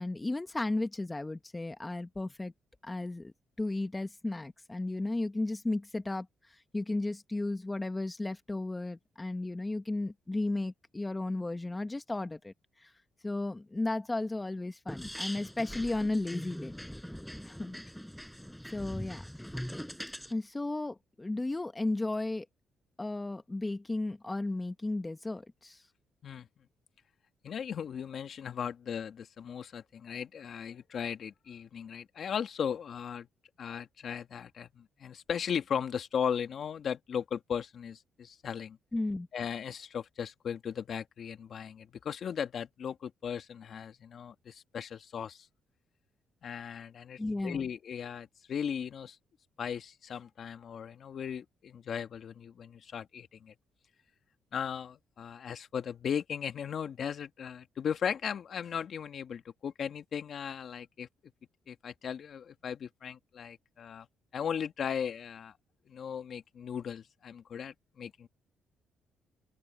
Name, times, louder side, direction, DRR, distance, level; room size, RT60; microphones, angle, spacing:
voice 1, 0.0-2.5 2.8-12.9 13.2-16.8 17.4-17.8 18.7-19.2 20.3-22.4 23.0-25.8 38.9-39.3 47.2-47.7, left 2 dB, 15° left, 1.5 m, -34 dB
sound 1, 14.9-20.3, equal, ahead, 5.5 m, -42 dB
voice 2, 27.4-33.3 33.6-38.8 39.3-45.5 46.4-49.2 49.6-53.5 54.5-61.1 61.7-64.1 64.3-65.5 65.9-68.3, left 7 dB, 55° left, 1.9 m, -37 dB
open air
cardioid pair, 90°, 0 cm